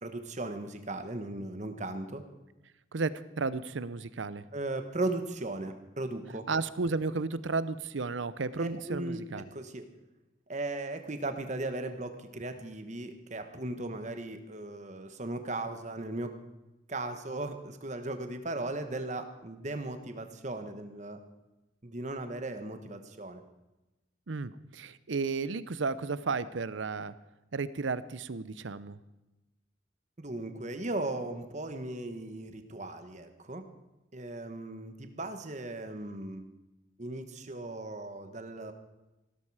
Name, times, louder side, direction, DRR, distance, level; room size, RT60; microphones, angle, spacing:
voice 1, 0.0-2.2 4.5-6.5 8.6-9.9 10.5-16.4 16.9-21.2 21.8-23.4 30.2-33.6 34.1-36.4 37.0-38.7, right 2 dB, 40° right, 7 dB, 1.3 m, -37 dB
voice 2, 3.4-4.4 6.5-9.5 24.3-27.1 27.5-29.0, right 4 dB, 75° right, 16 dB, 0.7 m, -33 dB
16.5 x 13.0 x 4.9 m, 1.0 s
head